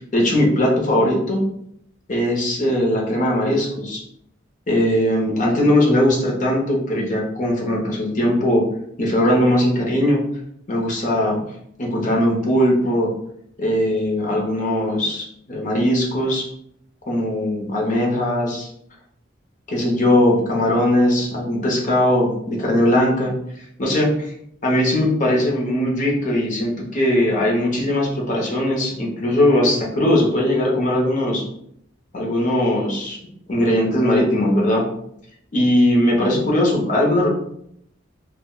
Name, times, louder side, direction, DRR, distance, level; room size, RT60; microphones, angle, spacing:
voice 1, 0.1-1.4 2.1-4.0 4.7-8.6 9.0-10.2 10.7-11.4 11.8-13.1 13.6-16.5 17.1-18.7 19.7-23.3 23.8-24.3 24.6-31.4 32.1-33.2 33.5-34.8 35.5-37.3, left 1 dB, 40° left, -2 dB, 0.6 m, -19 dB
2.3 x 2.1 x 3.6 m, 0.72 s
head